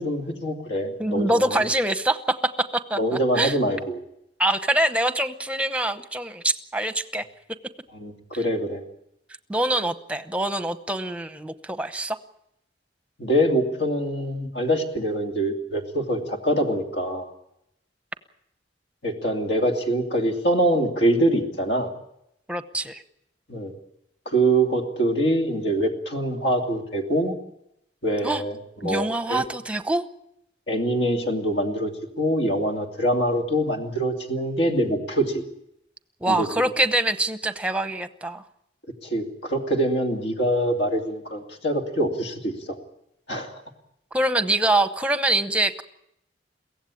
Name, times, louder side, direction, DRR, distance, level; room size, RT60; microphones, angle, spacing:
voice 1, 0.0-1.6 3.0-4.0 7.9-8.8 13.2-17.3 19.0-21.9 23.5-23.7 24.3-27.3 28.0-29.4 30.7-31.9 32.2-35.4 36.2-36.5 39.0-42.8 43.3-43.6, right 1 dB, 65° left, 3 dB, 2.7 m, -24 dB
voice 2, 1.0-3.0 3.4-3.6 4.4-7.3 9.5-12.2 22.5-23.0 28.2-28.4 28.8-30.0 36.2-38.4 44.1-45.8, right 1 dB, 5° right, 11 dB, 0.9 m, -24 dB
22.5 x 16.5 x 8.6 m, 0.80 s
head